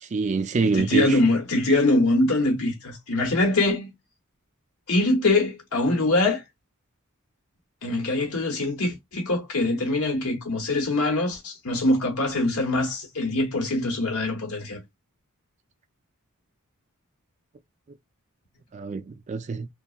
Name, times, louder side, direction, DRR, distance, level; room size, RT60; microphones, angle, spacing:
voice 1, 0.0-1.2 18.7-19.7, right 4 dB, 30° right, 0.3 m, -26 dB
voice 2, 0.6-3.9 4.9-6.4 7.8-14.8, left 2 dB, 75° left, 1.1 m, -23 dB
2.8 x 2.3 x 2.4 m
head